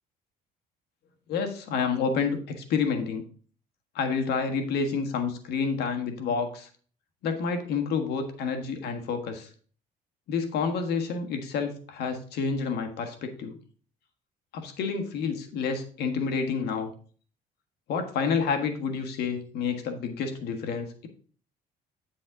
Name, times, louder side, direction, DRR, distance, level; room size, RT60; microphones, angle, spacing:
voice 1, 1.3-3.2 3.9-6.7 7.2-9.5 10.3-13.6 14.5-16.9 17.9-21.1, left 5 dB, 75° left, 5 dB, 1.5 m, -29 dB
8.1 x 7.4 x 3.8 m, 0.43 s
cardioid pair, 110°, 17 cm